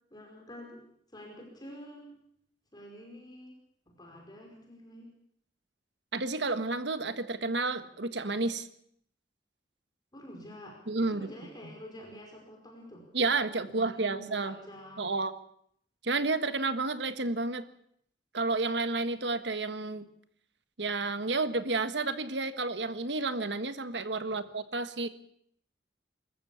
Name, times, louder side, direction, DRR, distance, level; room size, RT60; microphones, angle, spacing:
voice 1, 0.1-0.8 1.1-2.2 2.7-3.5 3.9-5.1 10.1-13.0 13.6-15.1 24.2-24.4, equal, 25° left, 0 dB, 5.0 m, -48 dB
voice 2, 6.1-8.7 10.9-11.3 13.1-14.5 15.0-15.3 16.0-17.6 18.3-20.0 20.8-25.1, right 3 dB, 75° right, 11 dB, 1.5 m, -31 dB
25.5 x 14.5 x 8.6 m, 0.68 s
head